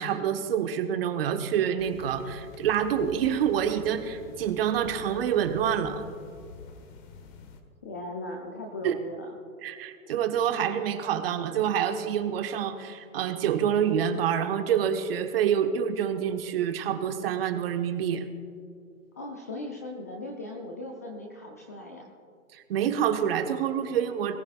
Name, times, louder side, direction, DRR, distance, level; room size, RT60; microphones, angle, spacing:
voice 1, 0.0-6.0 8.8-8.9 9.6-18.3 22.5-24.4, right 9 dB, 45° right, 8 dB, 1.2 m, -27 dB
sound 1, 1.8-7.6, left 4 dB, 35° left, 1.4 m, -47 dB
voice 2, 7.8-9.4 19.2-22.1, left 2 dB, 15° left, 1 dB, 0.3 m, -38 dB
21.0 x 14.5 x 2.4 m, 2.4 s
figure-of-eight pair, 125°, 41 cm